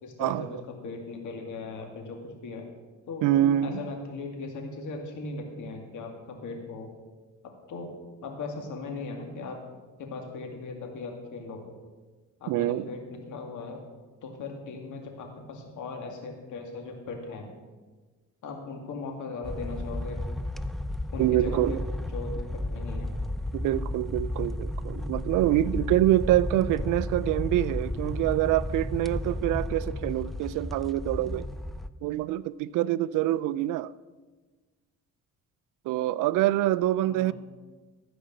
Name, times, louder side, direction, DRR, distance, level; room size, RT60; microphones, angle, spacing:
voice 1, 0.0-2.7 3.1-3.3 3.6-6.9 7.7-7.9 8.2-9.6 10.0-11.7 12.4-13.8 14.2-17.5 18.4-20.3 21.1-21.8 22.1-23.1 37.1-37.3, left 3 dB, 80° left, 2.3 m, -38 dB
voice 2, 3.2-3.8 12.5-12.9 21.2-21.8 23.5-31.5 32.0-33.9 35.9-37.3, right 14 dB, 90° right, 0.5 m, -25 dB
sound 1, 19.4-31.9, left 1 dB, ahead, 0.5 m, -33 dB
14.5 x 5.2 x 7.6 m
cardioid pair, 90°, 30 cm